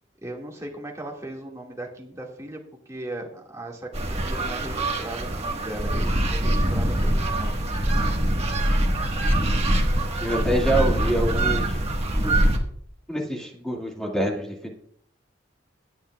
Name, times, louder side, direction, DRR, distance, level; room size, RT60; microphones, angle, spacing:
voice 1, 0.2-2.6 2.9-7.6, right 1 dB, 15° right, -1 dB, 1.9 m, -37 dB
sound 1, 3.9-12.6, right 1 dB, 30° right, 1.5 m, -23 dB
voice 2, 10.2-11.8 12.2-12.4 13.1-14.7, right 1 dB, 5° left, -1 dB, 2.0 m, -26 dB
18.0 x 8.8 x 2.3 m, 0.66 s
head